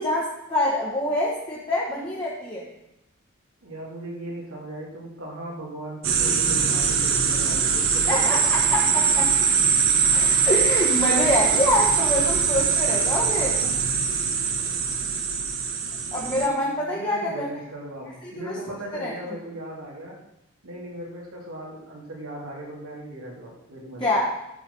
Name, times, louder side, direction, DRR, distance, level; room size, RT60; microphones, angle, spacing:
voice 1, 0.0-2.7 8.1-9.3 10.1-13.6 16.1-17.5 18.2-18.6 18.9-19.1 24.0-24.3, left 1 dB, 20° left, -5 dB, 1.5 m, -25 dB
voice 2, 3.6-8.5 11.5-11.9 13.6-13.8 16.0-20.2 20.6-24.0, right 1 dB, 90° right, -4 dB, 3.3 m, -38 dB
sound 1, 6.0-16.5, right 6 dB, 65° right, 1.2 m, -22 dB
13.0 x 4.7 x 5.7 m, 0.87 s
head